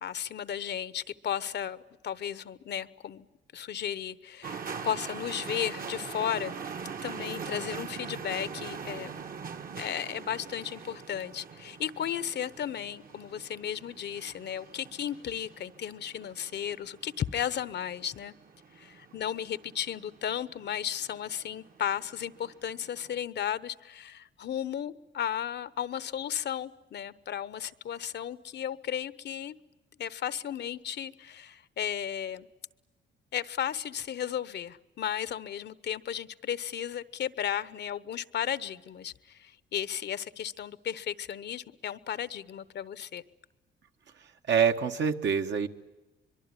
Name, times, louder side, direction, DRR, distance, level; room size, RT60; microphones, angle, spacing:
voice 1, 0.0-1.8 2.0-3.3 3.5-6.6 7.0-9.2 9.8-18.3 18.8-29.6 30.0-32.5 33.3-43.2, left 9 dB, 60° left, 17 dB, 0.9 m, -34 dB
sound 1, 4.4-23.2, right 6 dB, 45° right, 1.4 m, -43 dB
voice 2, 44.5-45.7, right 7 dB, 65° right, 5 dB, 1.6 m, -25 dB
24.0 x 23.0 x 9.8 m, 1.1 s
cardioid pair, 90°, 20 cm